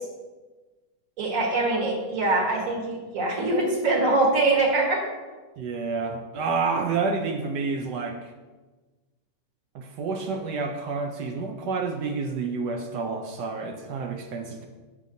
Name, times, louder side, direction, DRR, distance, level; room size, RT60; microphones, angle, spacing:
voice 1, 1.2-5.0, right 2 dB, 45° right, -2 dB, 1.7 m, -23 dB
voice 2, 5.6-8.3 9.7-14.7, right 4 dB, 75° right, 4 dB, 1.0 m, -29 dB
7.3 x 6.6 x 2.7 m, 1.3 s
omnidirectional pair, 2.2 m